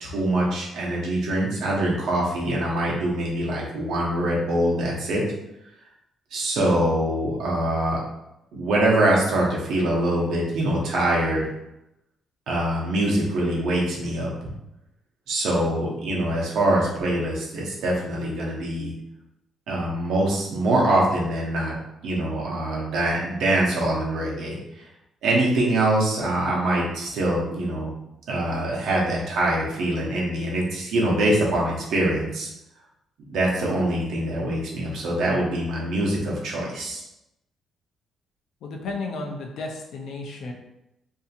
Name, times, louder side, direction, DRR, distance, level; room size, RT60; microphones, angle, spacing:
voice 1, 0.0-5.2 6.3-8.0 8.5-11.5 12.5-14.5 15.3-18.9 19.7-21.7 22.0-24.8 25.2-27.9 28.3-32.5 33.3-37.0, right 1 dB, 80° right, -3 dB, 0.8 m, -24 dB
voice 2, 38.6-40.5, left 3 dB, 75° left, 1 dB, 0.5 m, -33 dB
2.7 x 2.7 x 2.4 m, 0.87 s
cardioid pair, 90°, 0 cm